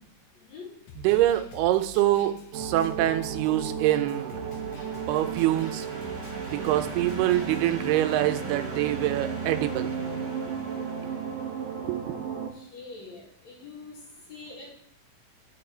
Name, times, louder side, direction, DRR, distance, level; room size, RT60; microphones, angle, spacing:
voice 1, 0.3-0.7 12.5-14.0 14.3-14.7, left 4 dB, 55° left, -2 dB, 2.6 m, -44 dB
Snare drum, 0.9-7.7, left 1 dB, 75° left, 1.5 m, -46 dB
voice 2, 1.0-4.4 5.1-5.9 6.5-9.9 11.8-12.2, right 14 dB, 90° right, 9 dB, 2.6 m, -25 dB
sound 1, 2.5-12.5, right 6 dB, 75° right, 1.6 m, -34 dB
sound 2, 3.6-12.1, right 3 dB, 40° right, 0.9 m, -43 dB
10.5 x 6.2 x 4.4 m, 0.70 s
omnidirectional pair, 4.4 m